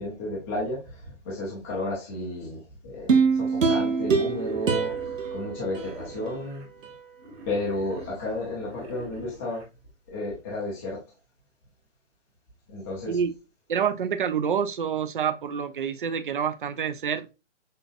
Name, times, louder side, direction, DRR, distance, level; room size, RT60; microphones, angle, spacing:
voice 1, 0.0-4.9 5.3-6.6 7.4-9.6 10.1-11.0 12.7-13.2, left 1 dB, 10° left, 0.5 m, -32 dB
sound 1, 3.1-6.4 6.8-6.9, right 5 dB, 80° right, 0.9 m, -25 dB
Wild animals, 4.2-6.7 7.2-9.7, right 2 dB, 60° right, 2.0 m, -46 dB
voice 2, 13.7-17.3, right 7 dB, 45° right, 0.5 m, -27 dB
6.3 x 2.4 x 2.4 m
hypercardioid pair, 145°, 38 cm